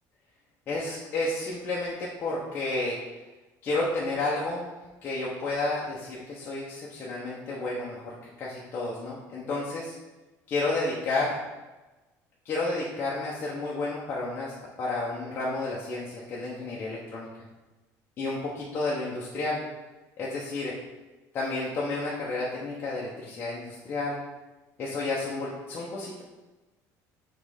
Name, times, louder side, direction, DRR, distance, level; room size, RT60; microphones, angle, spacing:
voice 1, 0.7-3.0 3.6-4.7 5.0-10.0 10.5-11.4 12.4-17.3 18.2-19.6 20.2-20.7 21.3-24.2 24.8-26.2, left 2 dB, 30° left, -5 dB, 0.9 m, -31 dB
6.0 x 3.2 x 5.0 m, 1.1 s
cardioid pair, 165°, 7 cm